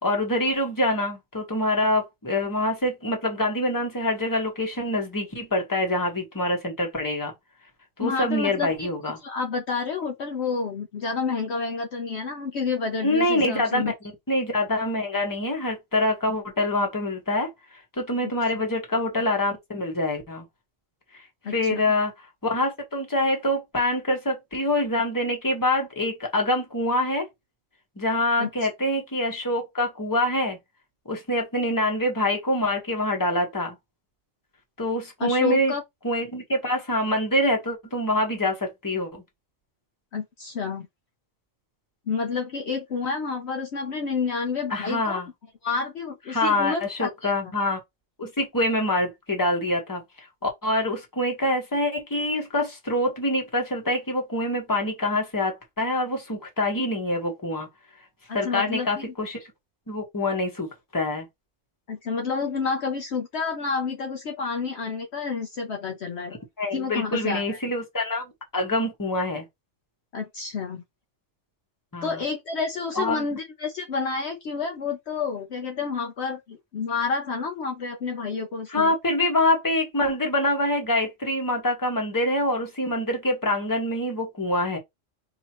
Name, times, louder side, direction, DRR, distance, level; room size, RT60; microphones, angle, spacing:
voice 1, 0.0-7.3 8.0-9.2 13.0-13.8 14.3-17.5 18.0-20.4 21.5-22.1 22.4-27.3 28.0-30.6 31.0-33.8 34.8-35.7 36.0-39.2 44.7-45.3 46.3-47.8 48.2-57.7 58.3-59.4 59.9-61.3 66.6-69.4 71.9-72.2 73.0-73.2 78.7-84.8, left 1 dB, 15° left, 1.2 m, -25 dB
voice 2, 8.0-8.9 9.2-13.9 18.2-18.3 21.4-21.8 28.4-28.5 35.2-35.8 40.1-40.9 42.1-45.2 45.6-47.5 58.3-59.1 61.9-66.3 66.7-67.6 70.1-70.8 72.0-78.9, left 5 dB, 60° left, 0.9 m, -29 dB
4.4 x 2.8 x 2.9 m
omnidirectional pair, 1.3 m